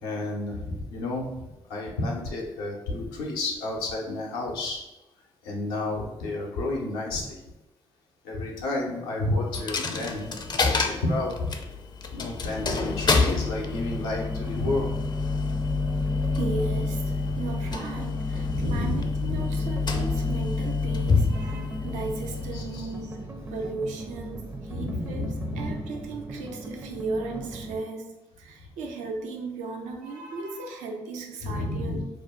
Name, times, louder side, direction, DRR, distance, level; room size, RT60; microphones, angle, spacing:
voice 1, 0.0-4.8 5.4-7.4 8.2-11.5 12.1-14.9 18.4-19.4 22.5-22.8 24.7-25.8 31.4-32.0, left 2 dB, 90° left, -2 dB, 0.5 m, -31 dB
Coin (dropping), 9.5-23.3, left 4 dB, 35° left, 0.4 m, -28 dB
sound 1, 13.2-27.8, right 1 dB, 20° right, 0.5 m, -39 dB
voice 2, 16.2-23.2 23.5-32.1, right 3 dB, 80° right, 2 dB, 0.5 m, -36 dB
2.5 x 2.1 x 3.4 m, 0.98 s
hypercardioid pair, 45°, 12 cm